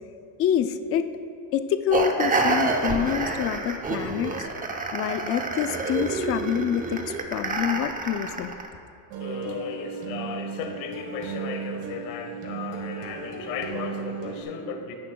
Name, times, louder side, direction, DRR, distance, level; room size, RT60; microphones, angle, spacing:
voice 1, 0.4-1.1 1.5-4.5 4.9-8.5, left 9 dB, 30° left, 10 dB, 0.4 m, -27 dB
sound 1, 1.9-8.7, right 3 dB, 15° right, 0.7 m, -28 dB
sound 2, 9.1-14.4, right 5 dB, 70° right, 1.9 m, -35 dB
voice 2, 9.2-14.9, left 6 dB, 75° left, 6 dB, 1.4 m, -35 dB
16.0 x 10.5 x 2.3 m, 2.6 s
cardioid pair, 130°, 48 cm